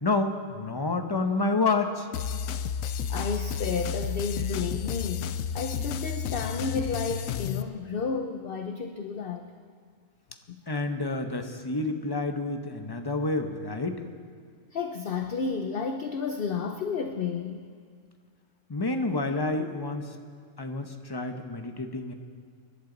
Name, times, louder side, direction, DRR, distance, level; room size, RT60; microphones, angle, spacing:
voice 1, 0.0-2.1 10.7-14.0 18.7-20.1 20.6-22.1, left 3 dB, 20° left, 5 dB, 0.8 m, -29 dB
sound 1, 2.1-7.6, left 7 dB, 75° left, 1.0 m, -31 dB
voice 2, 3.1-9.4 14.7-17.6, left 5 dB, 50° left, 5 dB, 0.8 m, -32 dB
26.0 x 11.5 x 3.9 m, 2.1 s
omnidirectional pair, 1.5 m